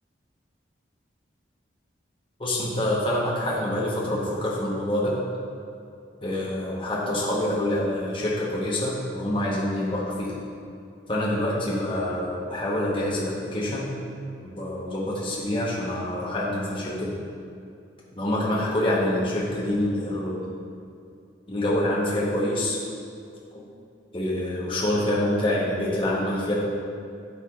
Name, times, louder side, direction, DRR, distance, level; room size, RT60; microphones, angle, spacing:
voice 1, 2.4-5.2 6.2-10.3 11.1-13.9 14.4-17.2 18.1-20.5 21.5-22.8 23.5-23.6 24.1-26.6, left 1 dB, 25° left, -6 dB, 0.9 m, -26 dB
12.0 x 4.6 x 2.4 m, 2.5 s
head